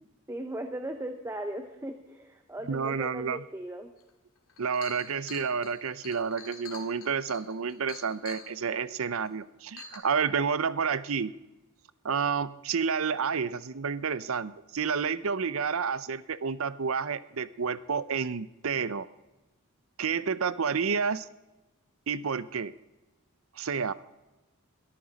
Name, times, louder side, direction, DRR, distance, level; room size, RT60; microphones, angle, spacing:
voice 1, 0.3-3.9 8.9-9.0, right 1 dB, 15° right, 6 dB, 0.8 m, -38 dB
voice 2, 2.7-3.4 4.6-11.3 12.0-19.1 20.0-21.3 22.1-22.7 23.6-23.9, right 6 dB, 70° right, 17 dB, 0.6 m, -30 dB
Chink clink, 4.1-4.2 4.5-8.5 9.2-9.3 9.8-10.0, left 6 dB, 80° left, 2.4 m, -46 dB
21.5 x 14.0 x 4.1 m, 1.0 s
head